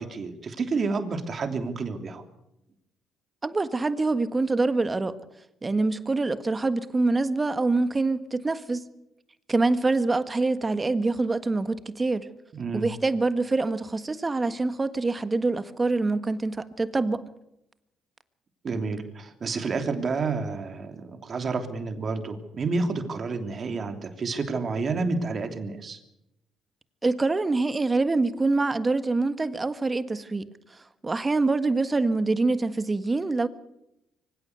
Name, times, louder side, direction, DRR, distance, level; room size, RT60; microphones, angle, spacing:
voice 1, 0.0-2.2 12.5-12.9 18.6-26.0, right 4 dB, 45° right, 3.1 m, -30 dB
voice 2, 3.4-5.2 5.6-8.9 9.5-12.3 12.7-17.2 27.0-30.5 31.0-33.5, right 3 dB, 25° right, 1.5 m, -25 dB
24.0 x 17.0 x 8.1 m
supercardioid pair, 65°, 0 cm